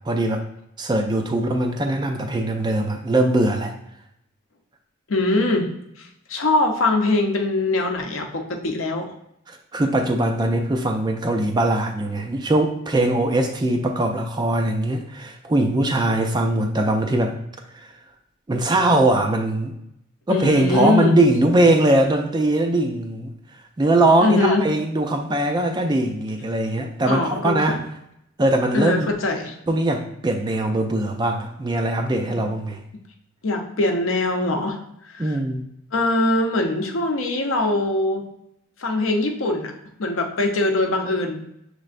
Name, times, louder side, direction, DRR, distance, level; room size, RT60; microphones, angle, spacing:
voice 1, 0.1-0.4 0.8-3.7 9.5-17.4 18.5-19.7 20.3-23.3 23.8-27.8 28.4-29.1 29.7-32.8 35.2-35.7, right 1 dB, 20° right, 4 dB, 0.3 m, -21 dB
voice 2, 5.1-5.7 6.0-9.1 20.3-21.2 24.2-24.7 27.1-27.8 28.7-29.5 32.3-32.4 33.4-34.8 35.0-35.4 35.9-38.3 38.8-39.7 40.0-41.5, left 2 dB, 65° left, 3 dB, 0.7 m, -22 dB
6.3 x 3.2 x 2.5 m, 0.78 s
head